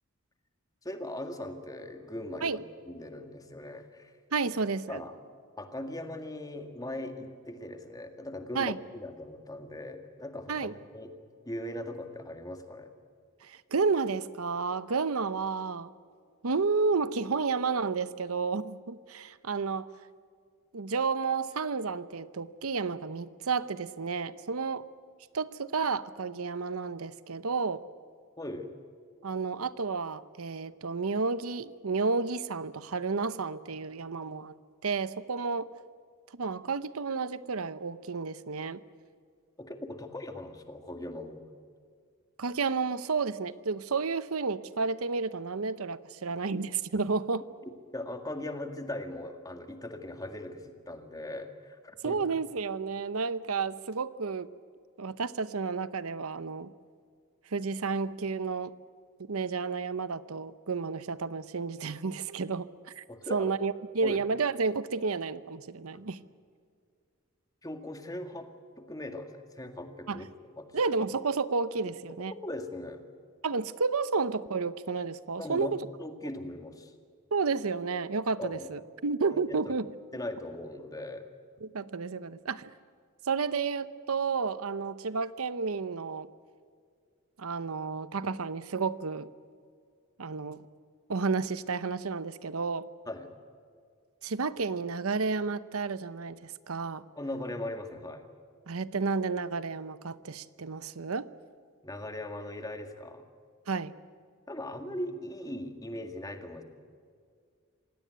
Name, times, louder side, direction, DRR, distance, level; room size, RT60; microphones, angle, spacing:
voice 1, 0.8-2.6 2.9-4.2 4.9-5.1 5.6-11.1 11.5-12.9 28.4-28.7 39.6-41.4 47.9-52.2 63.1-63.5 64.0-64.2 65.9-66.0 67.6-68.5 68.8-70.3 70.6-70.8 72.4-73.0 75.4-76.9 78.4-78.7 79.3-79.4 80.1-81.2 93.1-93.3 97.2-98.3 101.8-103.2 104.5-106.6, left 1 dB, 15° left, 6 dB, 2.0 m, -39 dB
voice 2, 4.3-5.0 8.5-8.8 10.5-10.7 13.4-15.9 16.4-19.9 20.7-24.9 25.3-27.8 29.2-34.5 34.8-35.7 36.4-38.8 42.4-47.4 52.0-54.5 55.0-56.7 57.5-58.7 59.3-63.0 63.3-66.2 70.1-70.2 70.7-72.3 73.4-75.7 77.3-79.9 81.6-82.7 83.3-86.3 87.4-89.3 90.2-90.6 91.1-92.9 94.2-97.0 98.7-101.3 103.7-103.9, right 4 dB, 85° right, 15 dB, 0.8 m, -31 dB
26.5 x 18.0 x 9.4 m, 2.1 s
head